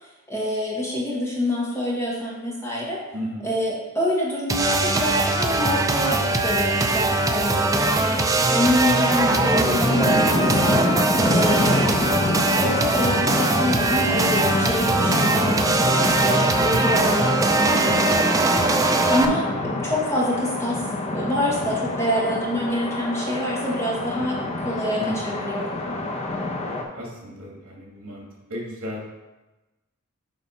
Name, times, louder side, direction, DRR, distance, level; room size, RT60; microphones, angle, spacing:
voice 1, 0.3-3.0 3.4-10.8 11.3-12.1 12.5-20.8 21.1-25.7, left 1 dB, 15° left, -5 dB, 1.5 m, -26 dB
voice 2, 3.1-3.5 19.4-19.5 25.0-25.5 26.6-29.1, equal, 70° right, -4 dB, 2.7 m, -35 dB
sound 1, 4.5-19.3, right 2 dB, 15° right, 0.5 m, -21 dB
sound 2, 9.2-26.8, left 2 dB, 30° left, 0.8 m, -27 dB
8.7 x 3.3 x 5.4 m, 1.1 s
head